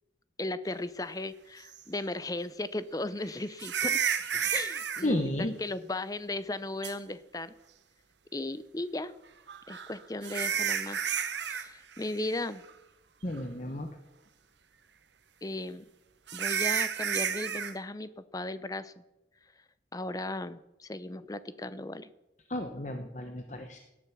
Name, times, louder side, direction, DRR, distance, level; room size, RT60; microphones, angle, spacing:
voice 1, 0.4-4.0 4.5-7.5 8.3-9.1 9.7-11.0 11.5-12.6 15.4-15.8 16.3-19.0 19.9-22.1, left 2 dB, 20° left, 14 dB, 0.6 m, -36 dB
sound 1, 1.7-1.8 3.6-5.0 6.8-6.9 9.5-11.7 11.9-12.3 12.7-12.8 13.4-13.5 16.3-17.7, right 8 dB, 85° right, 1.2 m, -31 dB
voice 2, 5.0-5.5 13.2-13.9 22.5-23.8, left 1 dB, 40° left, 6 dB, 1.1 m, -32 dB
17.5 x 10.5 x 6.1 m, 0.98 s
head